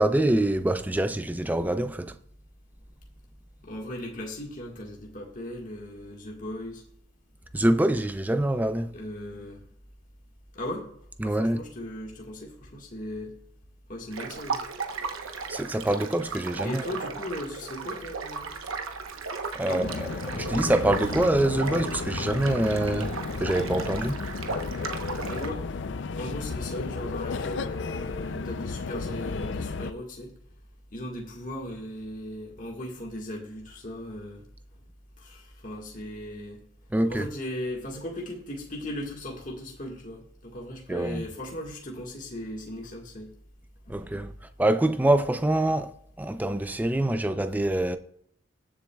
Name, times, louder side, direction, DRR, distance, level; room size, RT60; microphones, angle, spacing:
voice 1, 0.0-2.1 7.5-8.9 11.2-11.6 15.5-16.8 19.5-20.1 20.3-23.1 23.4-24.2 36.9-37.3 40.9-41.3 43.9-44.3 44.6-45.9 46.2-48.0, right 1 dB, 10° right, 0.4 m, -25 dB
voice 2, 3.6-6.8 8.9-9.6 10.5-10.9 11.2-13.3 13.9-14.6 16.6-18.5 19.6-20.0 25.3-25.6 26.2-30.3 30.9-34.4 35.2-36.6 37.1-43.3 43.8-44.2, left 1 dB, 40° left, 1.6 m, -37 dB
sound 1, 14.1-25.5, right 4 dB, 85° right, 1.0 m, -36 dB
sound 2, 19.8-29.9, left 4 dB, 60° left, 0.5 m, -33 dB
21.5 x 7.3 x 2.3 m
head